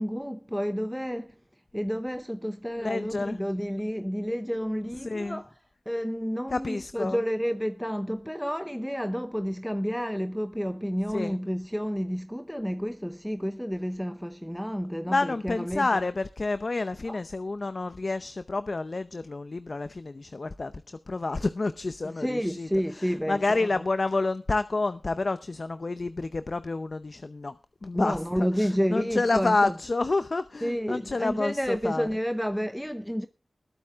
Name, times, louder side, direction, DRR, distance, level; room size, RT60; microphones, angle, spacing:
voice 1, 0.0-1.3 1.7-5.6 5.9-16.0 17.0-17.2 22.0-23.8 27.9-29.7 30.6-33.3, equal, ahead, 0.7 m, -30 dB
voice 2, 2.8-3.4 5.0-5.4 6.5-7.2 11.1-11.4 15.1-20.7 21.1-22.7 23.0-27.5 27.8-32.1, left 3 dB, 60° left, 0.7 m, -29 dB
20.0 x 8.5 x 3.6 m
cardioid pair, 45°, 0 cm